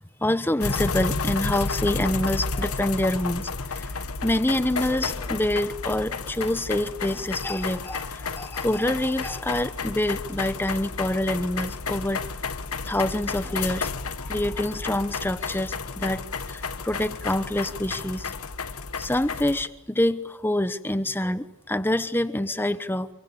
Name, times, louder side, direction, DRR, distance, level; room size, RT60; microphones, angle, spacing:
voice 1, 0.0-3.9 4.2-12.2 12.8-13.9 14.2-18.3 19.0-23.1, left 1 dB, 10° left, 1.0 m, -26 dB
sound 1, 0.6-19.7, left 4 dB, 75° left, 1.3 m, -32 dB
28.5 x 23.5 x 8.5 m
head